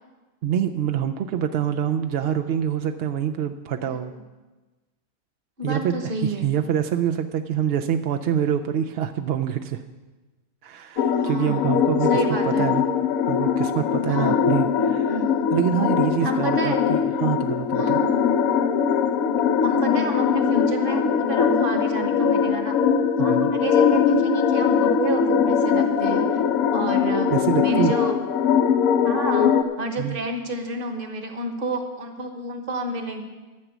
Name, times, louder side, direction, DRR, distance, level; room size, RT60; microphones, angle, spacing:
voice 1, 0.4-4.1 5.6-9.8 10.6-12.1 12.4-12.8 13.3-15.2 15.5-18.0 23.2-23.5 27.3-27.9 30.0-30.2, right 9 dB, 70° right, 6 dB, 0.6 m, -25 dB
voice 2, 3.8-4.2 5.6-6.5 11.1-11.6 12.1-12.7 14.1-14.4 15.1-15.5 16.2-16.8 17.7-18.1 19.6-22.7 23.2-26.4 26.7-27.3 27.6-28.2 29.0-33.2, right 2 dB, 40° right, 5 dB, 1.3 m, -30 dB
sound 1, 11.0-29.6, left 7 dB, 75° left, 1.2 m, -21 dB
12.0 x 6.0 x 7.9 m, 1.2 s
omnidirectional pair, 1.5 m